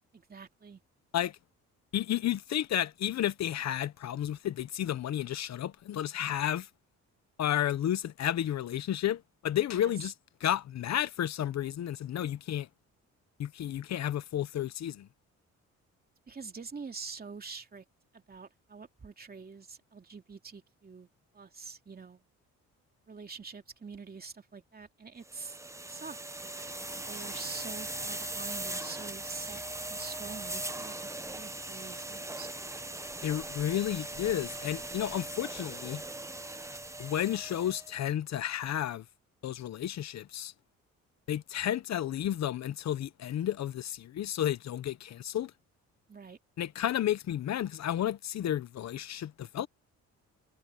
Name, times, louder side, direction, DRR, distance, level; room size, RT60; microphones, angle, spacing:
voice 1, 0.1-0.8 9.7-9.9 16.3-17.8 18.1-21.1 21.3-22.2 23.1-25.6 25.9-26.6 26.9-29.6 29.9-32.5 46.1-46.4, right 5 dB, 30° right, 2.8 m, -46 dB
voice 2, 1.9-6.7 7.4-10.1 10.4-12.7 13.4-15.1 33.2-36.0 37.0-39.0 39.4-40.5 41.3-45.5 46.6-49.7, left 11 dB, 60° left, 1.0 m, -32 dB
sound 1, 25.2-38.0, right 2 dB, 10° right, 1.2 m, -40 dB
cardioid pair, 90°, 30 cm